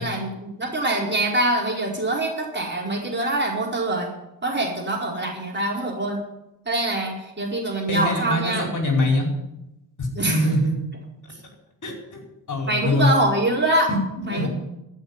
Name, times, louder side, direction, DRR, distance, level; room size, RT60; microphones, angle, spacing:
voice 1, 0.0-4.1 4.4-6.2 6.6-8.7 10.1-10.5 11.3-11.4 12.7-13.9 14.3-14.5, right 1 dB, 25° right, -1 dB, 4.7 m, -24 dB
voice 2, 7.9-9.3 10.3-10.7 11.8-13.1 13.9-14.5, left 1 dB, 40° left, 0 dB, 5.3 m, -23 dB
14.5 x 6.6 x 9.8 m, 0.91 s
hypercardioid pair, 55°, 47 cm